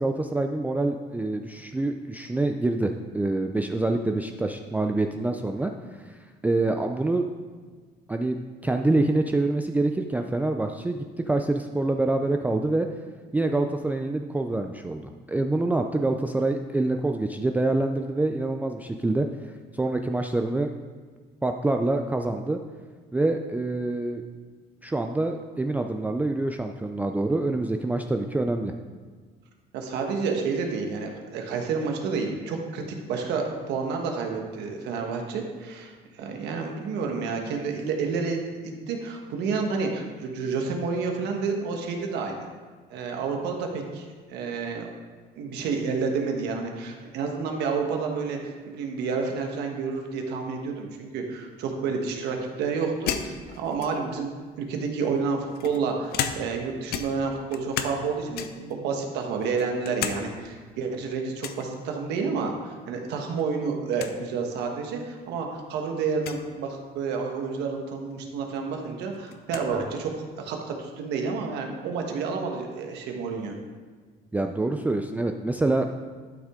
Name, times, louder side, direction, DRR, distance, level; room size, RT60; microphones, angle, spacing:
voice 1, 0.0-5.7 6.1-6.2 6.4-7.3 8.1-8.4 8.6-12.9 13.3-20.7 21.4-22.6 23.1-24.2 24.8-28.7 74.3-76.1, right 2 dB, 10° right, 4 dB, 0.4 m, -26 dB
voice 2, 29.7-35.9 36.2-38.4 38.9-42.5 42.9-44.9 45.4-54.3 54.6-73.6, right 5 dB, 85° right, 2 dB, 1.3 m, -30 dB
sound 1, 53.1-54.2 55.0-56.6 56.9-58.0 58.3-58.7 59.2-60.2 60.5-60.6 61.4-61.7 63.1-63.4 63.7-63.8 64.0-64.2 65.0-65.1 66.1-66.4 68.1-68.2 68.5-69.7, left 8 dB, 70° left, 0.7 m, -33 dB
11.5 x 6.2 x 3.7 m, 1.5 s
cardioid pair, 110°, 17 cm